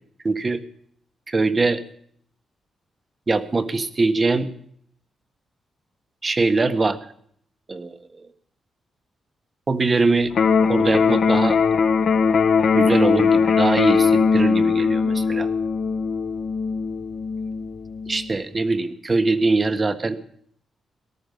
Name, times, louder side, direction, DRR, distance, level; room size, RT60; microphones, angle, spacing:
voice 1, 0.2-0.6 1.3-1.8 3.3-4.5 6.2-7.0 7.7-8.0 9.7-10.3 10.7-11.6 12.7-15.5 18.1-20.2, right 3 dB, 35° right, 10 dB, 1.5 m, -22 dB
Electric guitar, 10.3-18.3, left 5 dB, 65° left, 1.2 m, -20 dB
18.5 x 14.0 x 5.4 m, 0.64 s
cardioid pair, 95°, 0 cm